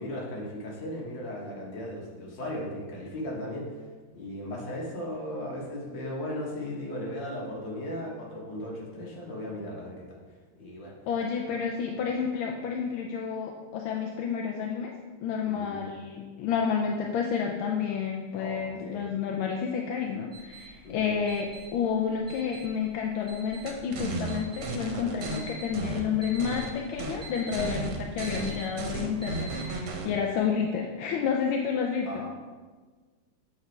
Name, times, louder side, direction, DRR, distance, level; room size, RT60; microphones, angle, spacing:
voice 1, 0.0-3.8 4.1-10.2 10.6-10.9 11.5-11.6 15.4-15.8 18.4-19.0 20.8-21.1 27.6-27.7 30.0-30.2 32.1-32.3, left 1 dB, 60° left, -3 dB, 2.1 m, -37 dB
voice 2, 11.1-14.9 15.2-32.2, left 6 dB, 75° left, 1 dB, 1.4 m, -30 dB
sound 1, 20.3-30.1, right 2 dB, 5° right, 0.9 m, -46 dB
sound 2, 23.7-25.4 25.7-26.7 27.0-27.2 27.5-30.1, right 4 dB, 70° right, 1.7 m, -34 dB
8.2 x 4.3 x 4.5 m, 1.4 s
omnidirectional pair, 2.4 m